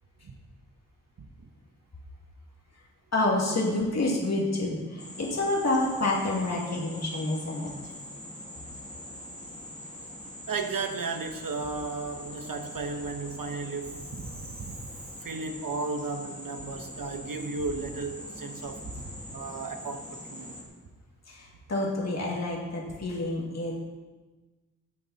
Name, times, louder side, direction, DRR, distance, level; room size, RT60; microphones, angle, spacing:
voice 1, 3.1-7.7 21.3-23.8, left 2 dB, 50° left, -3 dB, 2.6 m, -28 dB
sound 1, 5.0-20.6, left 1 dB, 20° left, 2.7 m, -43 dB
voice 2, 10.5-14.8 15.2-20.5, right 4 dB, 75° right, 6 dB, 1.3 m, -34 dB
18.0 x 7.7 x 4.2 m, 1.2 s
wide cardioid pair, 125°, 34 cm